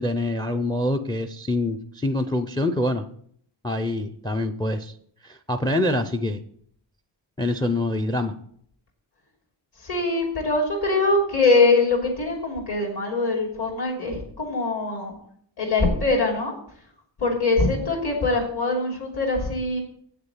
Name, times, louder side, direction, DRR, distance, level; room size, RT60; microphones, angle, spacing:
voice 1, 0.0-3.1 3.6-4.9 5.2-6.4 7.4-8.3, left 1 dB, 10° left, 10 dB, 0.4 m, -25 dB
voice 2, 9.8-15.1 15.6-16.5 17.2-19.8, left 3 dB, 55° left, -2 dB, 3.2 m, -23 dB
8.1 x 6.8 x 7.1 m, 0.64 s
wide cardioid pair, 175°, 47 cm